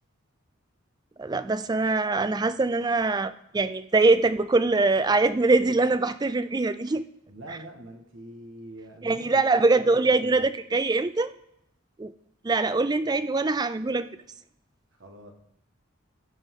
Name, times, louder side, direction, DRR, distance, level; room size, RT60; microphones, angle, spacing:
voice 1, 1.2-7.0 9.0-11.3 12.0-12.1 12.4-14.1, right 3 dB, 20° right, 13 dB, 0.4 m, -23 dB
voice 2, 7.3-9.4 9.8-10.4 15.0-15.3, right 1 dB, 65° right, 3 dB, 1.6 m, -44 dB
15.5 x 5.4 x 3.7 m, 0.77 s
head